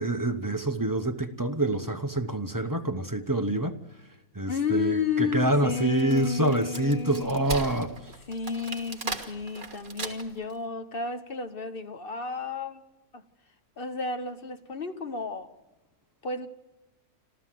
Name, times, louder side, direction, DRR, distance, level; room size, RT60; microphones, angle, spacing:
voice 1, 0.0-3.8 4.3-7.9, right 1 dB, 15° right, 0.7 m, -26 dB
voice 2, 4.5-7.4 8.3-12.8 13.1-13.2 13.8-15.5 16.2-16.5, left 5 dB, 40° left, 1.1 m, -31 dB
Wood, 5.8-10.5, right 3 dB, 35° right, 1.7 m, -38 dB
26.5 x 14.0 x 7.6 m
omnidirectional pair, 1.6 m